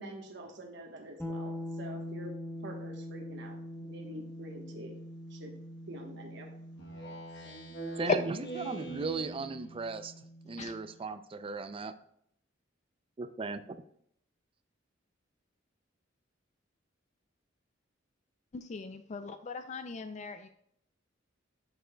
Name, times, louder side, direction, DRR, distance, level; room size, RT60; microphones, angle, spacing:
voice 1, 0.0-2.3 2.6-5.0 5.3-5.5 5.9-6.5, right 1 dB, 65° right, 1 dB, 1.2 m, -46 dB
sound 1, 1.2-11.0, equal, 10° left, 0.9 m, -44 dB
Speech synthesizer, 6.8-9.8, right 3 dB, 60° left, 1.1 m, -43 dB
voice 2, 8.0-11.9 13.2-13.8, right 3 dB, 30° right, 11 dB, 0.4 m, -37 dB
voice 3, 18.5-20.5, left 5 dB, 35° left, 9 dB, 0.4 m, -35 dB
10.0 x 6.9 x 2.2 m, 0.71 s
head